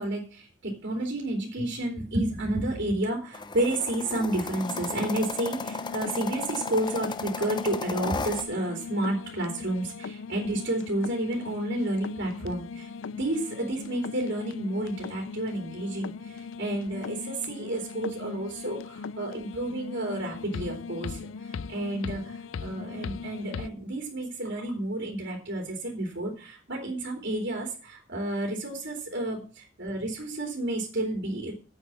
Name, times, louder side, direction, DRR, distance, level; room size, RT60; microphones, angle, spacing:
voice 1, 0.0-31.5, right 1 dB, 60° right, 0 dB, 3.3 m, -31 dB
sound 1, 3.3-8.4, left 4 dB, 25° left, 0.7 m, -35 dB
sound 2, 4.6-23.7, left 5 dB, 75° left, 0.5 m, -39 dB
8.3 x 8.0 x 7.2 m, 0.38 s
head